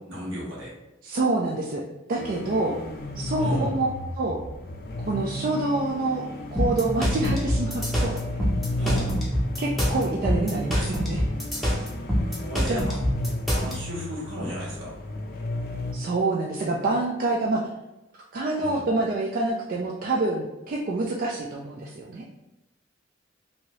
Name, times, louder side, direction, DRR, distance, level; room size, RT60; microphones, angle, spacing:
voice 1, 0.1-0.7 3.4-3.7 8.8-9.1 12.3-13.0 13.5-14.9 18.6-18.8, equal, 80° right, -5 dB, 1.3 m, -33 dB
voice 2, 1.0-1.8 2.1-2.8 3.2-3.9 4.2-4.4 5.1-6.2 6.5-8.2 9.6-11.2 12.7-12.8 15.9-17.6 18.3-22.3, right 2 dB, 50° right, -2 dB, 0.3 m, -26 dB
sound 1, 2.2-15.9, left 1 dB, 55° left, 0.4 m, -33 dB
sound 2, 6.6-13.7, equal, ahead, 0.7 m, -25 dB
2.8 x 2.6 x 3.0 m, 0.97 s
head